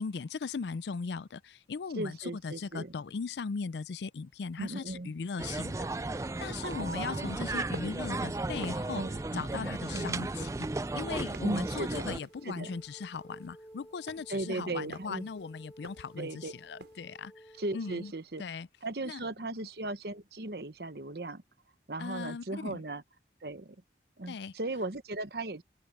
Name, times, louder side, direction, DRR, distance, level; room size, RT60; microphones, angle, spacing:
voice 1, 0.0-5.9 6.4-9.0 9.3-10.5 10.9-18.1 18.4-18.7 19.0-19.2 22.0-22.8 24.3-24.5, left 5 dB, 75° left, 0.4 m, -38 dB
voice 2, 2.0-2.9 4.6-5.1 6.6-7.4 8.9-9.5 9.9-10.3 11.4-12.1 12.4-12.8 14.3-15.2 16.2-16.5 17.6-18.4 18.8-21.4 21.9-23.0 23.4-23.8 24.2-25.6, right 2 dB, 60° right, 1.1 m, -37 dB
sound 1, 5.4-12.2, right 2 dB, 15° right, 0.4 m, -35 dB
sound 2, 6.8-17.1, right 2 dB, 75° right, 6.0 m, -52 dB
sound 3, 12.3-18.1, right 1 dB, 15° left, 2.2 m, -54 dB
head